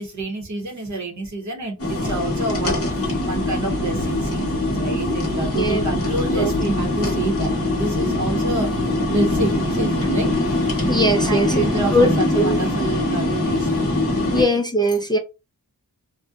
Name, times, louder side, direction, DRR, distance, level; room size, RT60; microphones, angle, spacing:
voice 1, 0.0-8.7 9.1-10.3 11.2-13.9 14.3-14.6, right 2 dB, 50° right, 0.8 m, -28 dB
sound 1, 1.8-14.4, left 1 dB, 40° left, 0.7 m, -22 dB
voice 2, 10.9-11.7 11.9-12.1 12.4-12.6 14.3-15.2, equal, 15° left, 0.3 m, -20 dB
2.6 x 2.1 x 2.3 m
wide cardioid pair, 140°, 37 cm